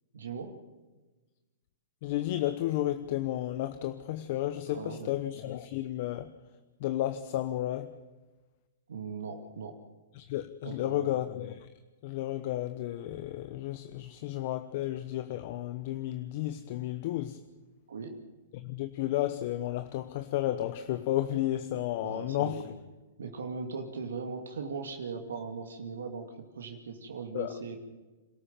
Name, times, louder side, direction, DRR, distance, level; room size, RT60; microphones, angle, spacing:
voice 1, 0.1-0.5 4.7-5.1 8.9-9.8 10.6-11.1 17.9-18.2 22.0-22.7 23.2-26.3 26.6-27.8, right 5 dB, 80° right, 2.5 m, -39 dB
voice 2, 2.0-6.3 6.8-7.9 10.2-11.7 12.0-17.4 18.5-22.6 27.3-27.5, left 14 dB, 50° left, 0.9 m, -32 dB
27.0 x 13.0 x 7.5 m
hypercardioid pair, 130°, 0 cm